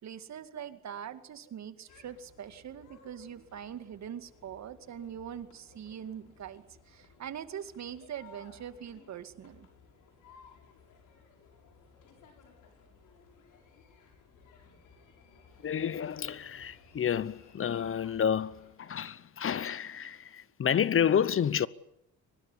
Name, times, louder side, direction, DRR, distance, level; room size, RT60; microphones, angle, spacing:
voice 1, 0.0-9.7, right 9 dB, 65° right, 2.2 m, -43 dB
sound 1, 1.9-18.7, left 5 dB, 85° left, 6.9 m, -59 dB
voice 2, 15.6-21.7, left 8 dB, 45° left, 0.9 m, -30 dB
24.0 x 20.0 x 9.9 m
cardioid pair, 90°, 30 cm